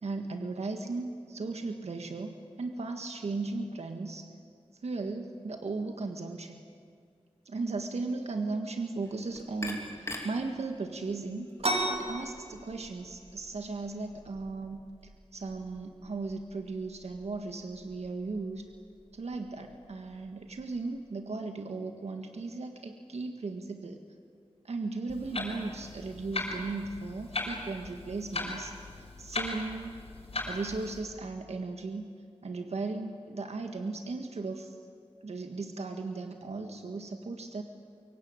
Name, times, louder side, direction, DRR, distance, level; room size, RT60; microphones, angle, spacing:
voice 1, 0.0-4.3 4.8-6.6 7.4-11.5 11.9-14.8 15.3-18.6 19.1-24.0 24.6-30.0 30.5-32.1 32.4-34.7 35.2-37.6, right 3 dB, 85° right, 5 dB, 1.7 m, -36 dB
sound 1, 9.0-14.1, left 1 dB, 25° left, 3.8 m, -45 dB
sound 2, 11.6-21.0, right 1 dB, 65° right, 3.5 m, -40 dB
Clock, 25.1-31.0, left 2 dB, 65° left, 6.0 m, -38 dB
25.0 x 23.0 x 9.0 m, 2.1 s
wide cardioid pair, 95°, 11 cm